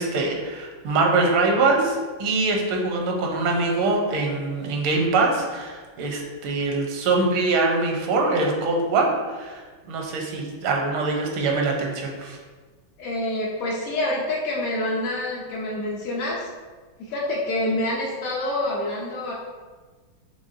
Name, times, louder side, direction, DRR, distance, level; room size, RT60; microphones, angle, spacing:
voice 1, 0.0-12.4, right 3 dB, 80° right, 1 dB, 1.5 m, -23 dB
voice 2, 13.0-16.5 17.0-19.3, left 1 dB, 75° left, -5 dB, 0.8 m, -27 dB
5.3 x 3.3 x 2.6 m, 1.4 s
omnidirectional pair, 2.2 m